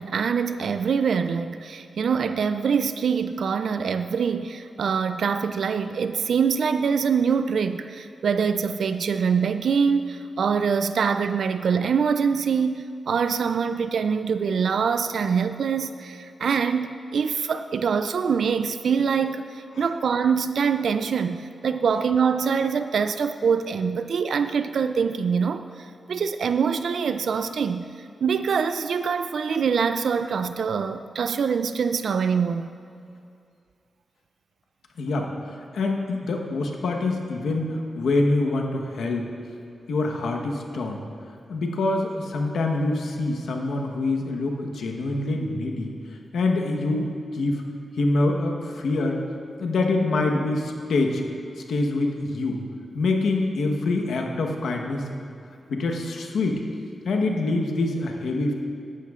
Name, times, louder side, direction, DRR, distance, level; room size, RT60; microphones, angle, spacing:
voice 1, 0.0-32.6, right 6 dB, 75° right, 10 dB, 0.3 m, -24 dB
voice 2, 35.0-39.3 39.9-41.0 41.5-45.9 46.3-47.6 48.0-49.2 49.6-51.2 51.7-52.6 52.9-55.2 55.7-56.6 57.0-58.5, left 2 dB, 85° left, 2 dB, 1.1 m, -25 dB
15.5 x 11.5 x 2.4 m, 2.5 s
cardioid pair, 70°, 0 cm